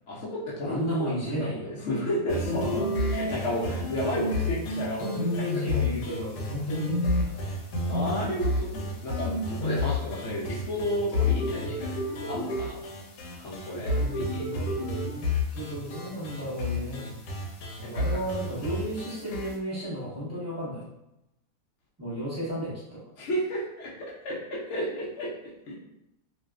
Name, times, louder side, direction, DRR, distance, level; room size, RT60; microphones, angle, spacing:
voice 1, 0.1-5.8 7.4-7.5 7.9-11.9 12.2-12.8 13.4-14.4 17.8-18.0 23.2-25.3 25.7-25.8, equal, 60° left, -6 dB, 0.8 m, -32 dB
voice 2, 0.6-1.6 5.2-7.5 13.7-17.0 17.9-20.8 22.0-23.0, equal, 10° right, -10 dB, 0.9 m, -34 dB
sound 1, 2.3-19.5, left 2 dB, 85° left, 1.1 m, -30 dB
2.6 x 2.3 x 2.2 m, 0.89 s
omnidirectional pair, 1.7 m